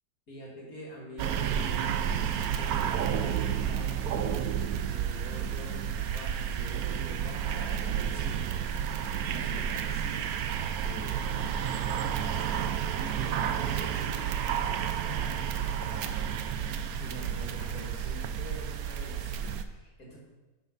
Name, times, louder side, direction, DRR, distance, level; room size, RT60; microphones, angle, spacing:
voice 1, 0.3-10.3 10.8-12.4 13.2-16.5 17.0-20.2, equal, 65° left, -2 dB, 2.6 m, -46 dB
sound 1, 1.2-19.6, right 8 dB, 70° right, 1.1 m, -31 dB
11.0 x 6.8 x 4.0 m, 1.1 s
omnidirectional pair, 1.7 m